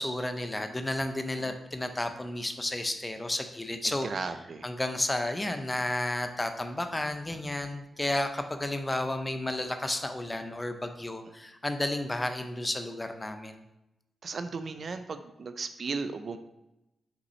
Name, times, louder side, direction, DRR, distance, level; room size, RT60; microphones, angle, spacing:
voice 1, 0.0-4.3 4.6-13.6, left 1 dB, 15° left, 7 dB, 0.5 m, -32 dB
voice 2, 4.0-4.7 14.2-16.4, right 4 dB, 50° right, 9 dB, 0.4 m, -36 dB
5.7 x 5.3 x 3.1 m, 0.92 s
wide cardioid pair, 130°, 0 cm